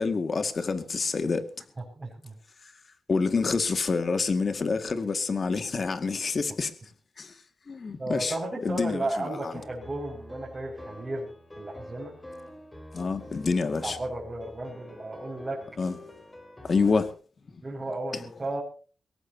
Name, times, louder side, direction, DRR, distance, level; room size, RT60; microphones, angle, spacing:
voice 1, 0.0-1.5 3.1-6.7 7.2-7.3 7.7-8.4 8.6-9.5 12.9-14.0 15.8-16.0 16.6-17.1 18.1-18.2, left 4 dB, 45° left, 2.1 m, -27 dB
voice 2, 2.0-2.3 8.0-11.3 11.6-12.2 13.8-15.6 17.6-18.6, right 2 dB, 30° right, 6.1 m, -34 dB
sound 1, 9.5-17.1, left 1 dB, 15° left, 4.2 m, -47 dB
22.5 x 18.0 x 2.9 m
cardioid pair, 85°, 0 cm